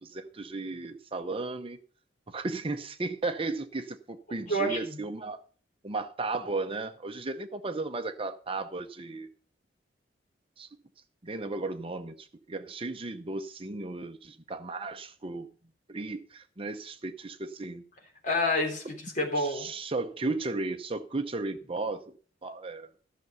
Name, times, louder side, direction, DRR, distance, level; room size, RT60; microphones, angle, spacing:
voice 1, 0.0-1.8 2.3-5.4 5.8-9.3 10.6-10.7 11.2-15.5 15.9-17.8 19.4-22.0 22.4-22.9, right 3 dB, 30° right, 0.7 m, -35 dB
voice 2, 4.3-5.0 18.2-19.7, left 1 dB, 45° left, 3.5 m, -29 dB
13.5 x 6.8 x 5.5 m
head